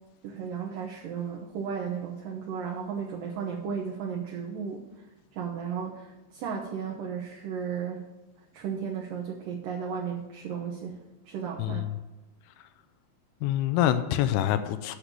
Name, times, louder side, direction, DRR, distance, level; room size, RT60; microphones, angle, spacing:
voice 1, 0.2-4.8 5.4-8.0 8.5-11.0 11.3-11.8, right 7 dB, 70° right, 2.6 m, -34 dB
voice 2, 11.6-12.0 13.4-15.0, left 12 dB, 90° left, 2.6 m, -26 dB
8.8 x 6.5 x 6.8 m
omnidirectional pair, 4.5 m